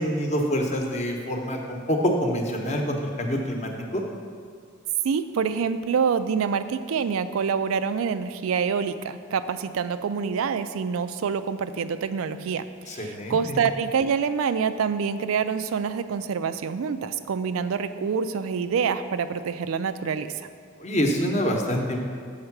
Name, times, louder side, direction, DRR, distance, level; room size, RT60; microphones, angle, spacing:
voice 1, 0.0-4.0 12.9-13.6 20.8-22.0, equal, 35° left, 2 dB, 0.9 m, -26 dB
voice 2, 5.0-12.6 12.9-20.3, right 6 dB, 90° right, 11 dB, 0.4 m, -26 dB
6.5 x 5.6 x 5.9 m, 2.1 s
head